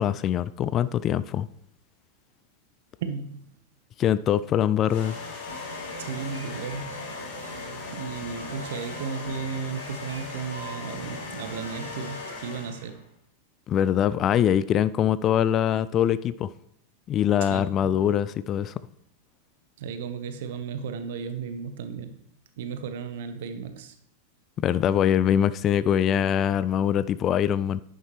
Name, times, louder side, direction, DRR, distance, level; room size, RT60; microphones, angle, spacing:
voice 1, 0.0-1.5 4.0-5.2 13.7-16.5 17.1-18.7 24.6-27.8, left 10 dB, 30° left, 0.3 m, -23 dB
voice 2, 3.0-3.5 6.0-7.0 7.9-13.0 17.4-18.1 19.8-22.2 22.6-24.0, right 6 dB, 55° right, 1.0 m, -35 dB
sound 1, 4.9-13.0, left 4 dB, 50° left, 4.0 m, -39 dB
sound 2, 5.5-12.4, right 2 dB, 85° right, 1.5 m, -43 dB
10.5 x 9.0 x 3.2 m
figure-of-eight pair, 90°, 0 cm